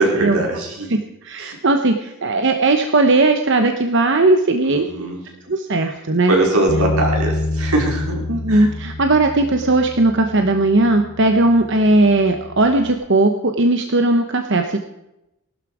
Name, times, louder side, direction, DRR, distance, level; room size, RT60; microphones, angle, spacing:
voice 1, 0.0-1.0 1.4-1.6 4.7-5.2 6.3-8.7, right 2 dB, 85° right, -1 dB, 4.7 m, -21 dB
voice 2, 0.9-5.1 5.5-6.3 8.3-14.8, right 2 dB, 55° right, 6 dB, 0.9 m, -17 dB
Bass guitar, 6.7-12.9, left 2 dB, 80° left, 1.4 m, -28 dB
19.0 x 12.5 x 4.9 m, 0.88 s
head